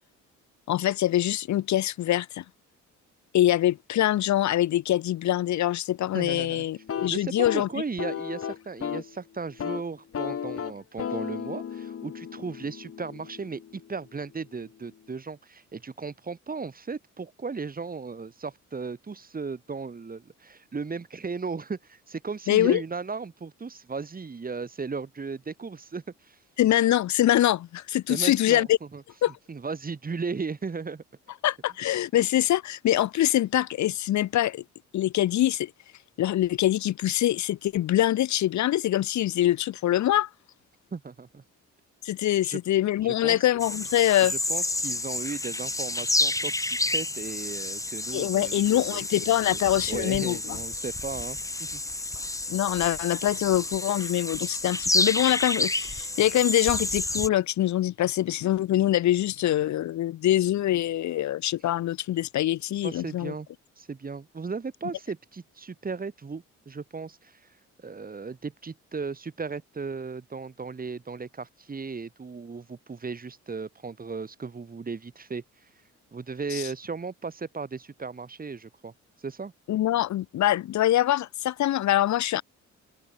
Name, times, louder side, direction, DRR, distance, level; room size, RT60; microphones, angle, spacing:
voice 1, 0.7-2.4 3.3-7.7 22.5-22.8 26.6-28.8 29.2-29.3 31.4-34.6 34.9-35.7 36.2-40.3 42.0-44.3 48.1-50.6 52.5-63.3 76.5-76.7 79.7-82.4, left 13 dB, 70° left, 1.0 m, -24 dB
voice 2, 6.1-6.7 7.0-26.4 28.1-29.0 29.5-31.0 40.9-41.4 42.4-42.6 43.0-43.4 44.2-49.0 49.5-49.6 49.9-51.8 62.8-63.5 63.8-67.4 67.8-75.4 76.1-78.9 79.2-79.5, right 4 dB, 30° right, 2.5 m, -36 dB
sound 1, 6.8-9.1 9.4-9.8 10.1-14.0, left 8 dB, 50° left, 2.5 m, -35 dB
sound 2, 43.6-57.3, left 2 dB, 10° left, 1.4 m, -30 dB
cardioid pair, 90°, 30 cm